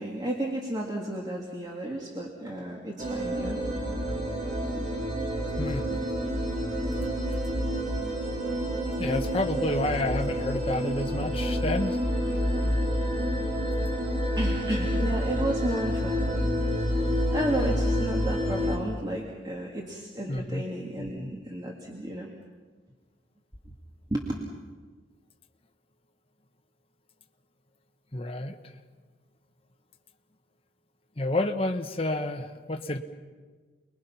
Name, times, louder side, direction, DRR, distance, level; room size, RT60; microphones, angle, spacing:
voice 1, 0.0-3.7 12.5-12.8 14.4-16.5 16.9-22.3 24.1-24.3, right 1 dB, 20° right, -2 dB, 2.3 m, -33 dB
sound 1, 3.0-18.8, equal, 40° right, 4.2 m, -28 dB
voice 2, 5.6-5.9 9.0-12.0 20.3-20.7 28.1-28.6 31.2-33.0, left 2 dB, 30° left, 3 dB, 1.3 m, -29 dB
29.5 x 21.5 x 5.8 m, 1.4 s
head